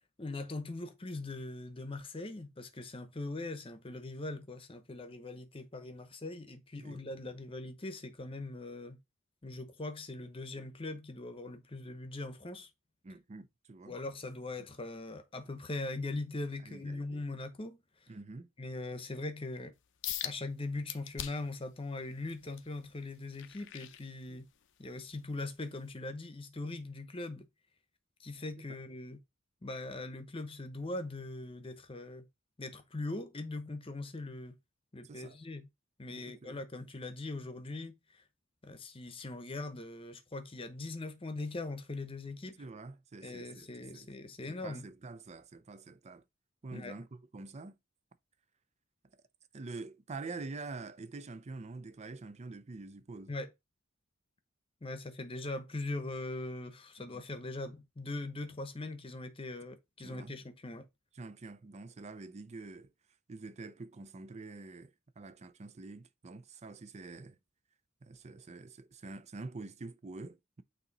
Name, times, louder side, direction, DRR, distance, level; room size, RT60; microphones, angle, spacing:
voice 1, 0.2-9.0 9.4-12.7 13.9-17.8 18.6-19.7 20.2-24.5 24.8-27.5 28.2-29.2 29.6-32.2 32.6-34.5 34.9-35.7 36.0-38.2 38.6-42.6 43.2-44.8 46.7-47.0 53.3-53.5 54.8-60.8, left 2 dB, 25° left, 0.9 m, -41 dB
voice 2, 13.0-14.0 16.6-17.2 18.1-18.5 28.6-28.7 35.0-35.4 36.1-36.6 42.6-44.1 44.5-46.2 46.6-47.7 49.5-53.3 57.1-57.2 60.0-60.3 61.2-62.9 63.3-67.4 68.0-70.6, right 3 dB, 35° right, 0.5 m, -46 dB
sound 1, 20.0-20.4 20.9-21.6 22.1-24.6 25.1-25.4 25.9-26.0, left 11 dB, 65° left, 0.6 m, -41 dB
8.5 x 2.9 x 4.0 m
head